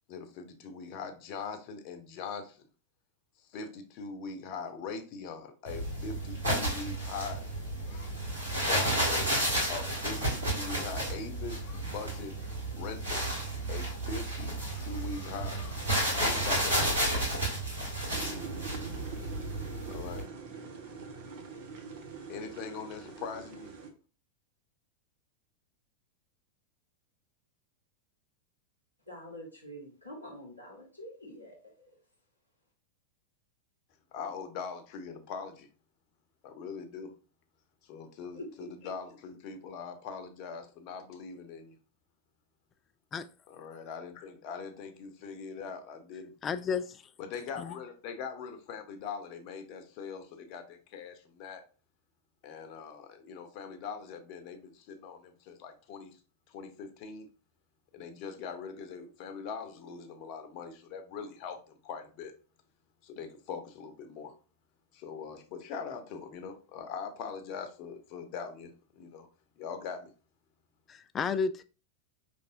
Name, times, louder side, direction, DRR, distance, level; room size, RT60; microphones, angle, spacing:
voice 1, 0.1-2.7 3.5-7.4 7.8-13.2 13.7-15.9 16.2-17.1 19.8-20.3 22.3-23.7 34.1-35.7 36.4-37.1 37.8-41.7 43.5-46.3 47.2-51.6 52.4-56.2 56.5-57.3 57.9-62.3 63.0-64.3 64.9-69.3 69.6-70.1, left 5 dB, 45° left, 0.8 m, -42 dB
sound 1, 5.7-20.2, right 1 dB, 75° right, 2.1 m, -32 dB
sound 2, 18.1-23.9, right 4 dB, 50° right, 0.9 m, -44 dB
voice 2, 29.1-31.9 38.3-38.7, left 1 dB, 90° right, 1.8 m, -46 dB
voice 3, 46.4-47.0 47.6-47.7 70.9-71.6, left 5 dB, 25° left, 0.3 m, -32 dB
5.4 x 3.3 x 2.6 m
figure-of-eight pair, 90°, 0 cm